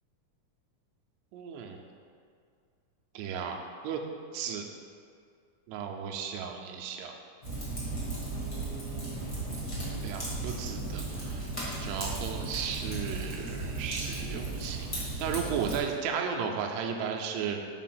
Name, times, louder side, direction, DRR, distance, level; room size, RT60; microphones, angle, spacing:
voice 1, 1.3-1.8 3.1-3.6 3.8-4.0 4.3-4.6 5.7-7.1 8.3-9.4 10.0-11.5 11.8-17.6, right 7 dB, 80° right, 2 dB, 1.7 m, -35 dB
Fire, 7.4-15.8, right 2 dB, 50° left, 0.3 m, -35 dB
5.0 x 4.5 x 5.8 m, 2.2 s
omnidirectional pair, 3.7 m